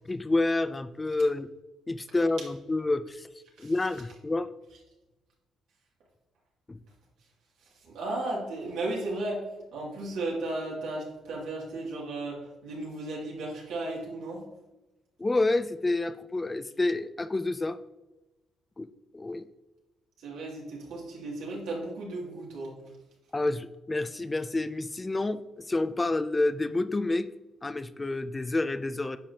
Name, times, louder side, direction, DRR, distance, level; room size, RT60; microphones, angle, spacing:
voice 1, 0.1-1.5 1.9-3.3 3.6-4.5 6.7-6.8 15.2-17.8 18.8-18.9 19.1-19.5 23.3-27.3 27.6-29.2, left 2 dB, 20° left, 13 dB, 0.4 m, -28 dB
voice 2, 7.8-14.5 20.2-22.7, right 2 dB, 85° right, -3 dB, 2.5 m, -35 dB
9.9 x 5.7 x 2.9 m, 1.0 s
cardioid pair, 90°, 0 cm